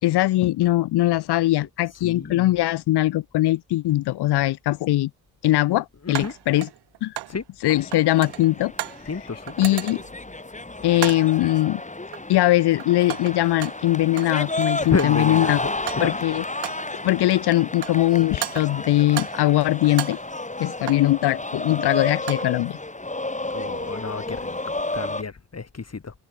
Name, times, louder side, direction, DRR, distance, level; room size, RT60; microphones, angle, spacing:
voice 1, 0.0-5.1 5.4-6.7 7.0-7.2 7.6-8.7 9.6-10.0 10.8-11.8 12.3-15.6 16.0-16.4 17.0-20.2 20.6-22.8, left 15 dB, 80° left, 1.9 m, -21 dB
voice 2, 2.0-2.5 6.0-6.3 7.3-7.4 9.1-9.5 14.8-16.2 23.5-26.1, left 5 dB, 40° left, 4.9 m, -30 dB
sound 1, 3.9-4.0 6.1-7.4 7.7-9.1 9.5-10.2 11.0-11.4 12.1-12.5 12.8-14.4 14.7-15.3 15.7-16.3 16.6-17.0 17.6-18.1 18.4-19.5 19.8-21.2 22.0-22.6, right 14 dB, 80° right, 3.2 m, -34 dB
sound 2, 7.6-25.2, left 2 dB, 20° left, 5.0 m, -32 dB
supercardioid pair, 45°, 39 cm